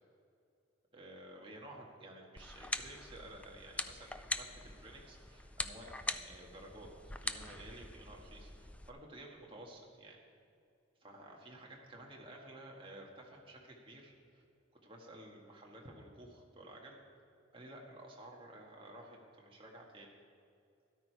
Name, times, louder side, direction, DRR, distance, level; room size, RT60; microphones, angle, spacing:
voice 1, 0.9-10.2 11.0-14.4 14.8-17.0 17.5-20.2, right 1 dB, 25° right, -1 dB, 1.7 m, -53 dB
sound 1, 2.4-8.9, left 2 dB, 5° left, 0.3 m, -43 dB
13.0 x 12.0 x 4.7 m, 2.5 s
head